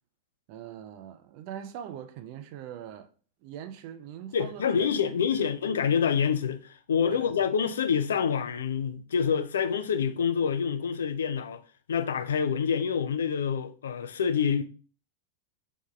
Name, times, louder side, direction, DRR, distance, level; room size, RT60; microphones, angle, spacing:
voice 1, 0.5-3.1 3.4-5.5 7.1-7.3, right 10 dB, 45° right, 0.4 m, -42 dB
voice 2, 4.3-11.6 11.9-14.6, left 7 dB, 65° left, 0.4 m, -27 dB
5.1 x 3.6 x 2.3 m
figure-of-eight pair, 90°, 0 cm